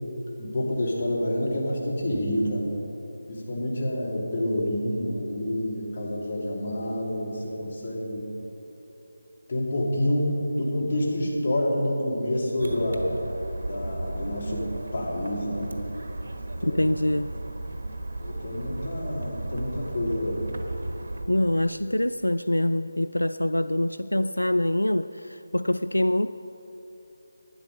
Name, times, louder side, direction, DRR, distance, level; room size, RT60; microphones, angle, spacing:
voice 1, 0.4-2.7 3.3-8.3 9.5-13.1 13.6-15.7 16.6-16.8 18.2-20.6, left 1 dB, 40° left, -4 dB, 2.9 m, -28 dB
sound 1, 12.6-21.3, right 2 dB, 55° right, 1.3 m, -35 dB
voice 2, 16.6-17.3 21.3-26.3, left 1 dB, 85° left, 11 dB, 0.3 m, -25 dB
12.0 x 10.0 x 5.4 m, 3.0 s
figure-of-eight pair, 160°, 0 cm